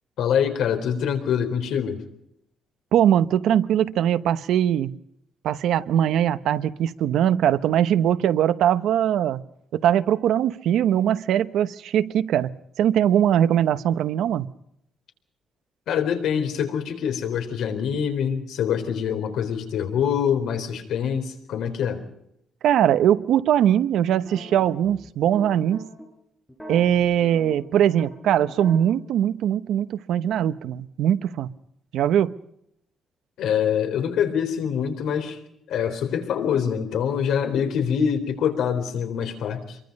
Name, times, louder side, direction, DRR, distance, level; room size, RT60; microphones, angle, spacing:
voice 1, 0.2-2.0 15.9-22.0 33.4-35.4 35.7-39.8, left 8 dB, 90° left, 4.1 m, -25 dB
voice 2, 2.9-4.9 5.4-9.4 9.7-12.5 12.8-14.5 22.6-25.9 26.7-31.5 31.9-32.3, right 10 dB, 80° right, 1.0 m, -21 dB
sound 1, 24.0-26.1 26.5-28.8, equal, 5° left, 5.0 m, -40 dB
27.0 x 23.5 x 5.4 m
cardioid pair, 175°, 0 cm